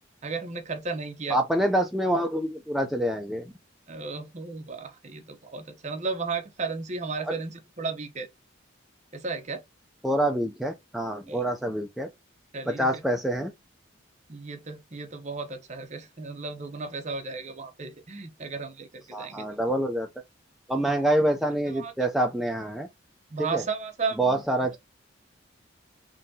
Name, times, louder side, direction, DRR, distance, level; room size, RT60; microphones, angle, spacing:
voice 1, 0.2-1.4 3.9-8.3 9.1-9.6 11.3-11.5 12.5-13.0 14.3-19.6 20.8-21.0 21.7-22.1 23.3-24.3, right 4 dB, 35° right, 0.7 m, -34 dB
voice 2, 1.3-3.4 7.3-7.4 10.0-12.1 12.7-13.5 19.1-20.1 20.7-22.9 23.5-23.6 24.2-24.8, right 1 dB, ahead, 0.3 m, -26 dB
3.8 x 2.8 x 2.6 m
head